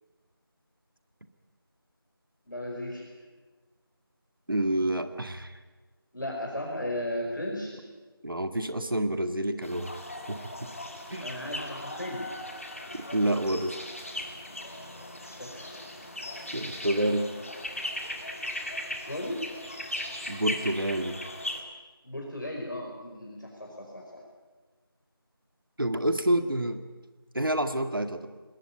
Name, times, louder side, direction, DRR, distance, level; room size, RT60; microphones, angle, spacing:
voice 1, 2.5-3.1 6.1-7.8 11.2-12.3 15.3-15.9 18.9-19.5 22.0-24.2, left 1 dB, 55° left, -1 dB, 5.2 m, -36 dB
voice 2, 4.5-5.6 8.2-10.0 10.3-10.7 11.1-11.5 12.9-13.8 16.5-17.3 20.3-21.2 25.8-26.8 27.3-28.3, right 1 dB, 60° right, 9 dB, 1.9 m, -28 dB
sound 1, 9.6-21.6, left 1 dB, 35° left, 2.2 m, -38 dB
20.5 x 17.0 x 9.9 m, 1.3 s
figure-of-eight pair, 175°, 13 cm